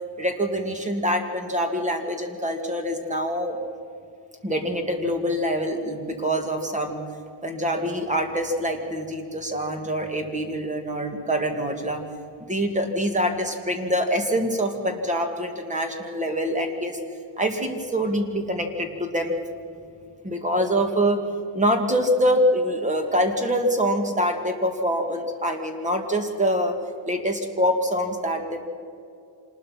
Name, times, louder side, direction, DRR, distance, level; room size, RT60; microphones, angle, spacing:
voice 1, 0.2-3.6 4.4-7.0 7.4-12.0 12.5-17.0 17.4-19.4 20.2-21.2 21.5-26.7 27.1-28.7, equal, 15° right, 5 dB, 2.2 m, -25 dB
26.5 x 20.5 x 5.9 m, 2.5 s
cardioid pair, 155°, 47 cm